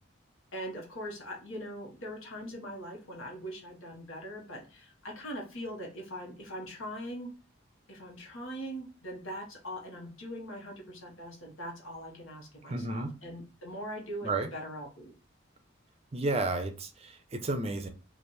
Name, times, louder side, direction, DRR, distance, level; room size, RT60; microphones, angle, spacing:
voice 1, 0.5-7.3 7.9-15.1, equal, 85° left, 0 dB, 1.3 m, -41 dB
voice 2, 12.7-13.1 14.2-14.5 16.1-17.9, right 2 dB, 30° right, 8 dB, 0.4 m, -32 dB
3.2 x 2.5 x 4.2 m, 0.33 s
head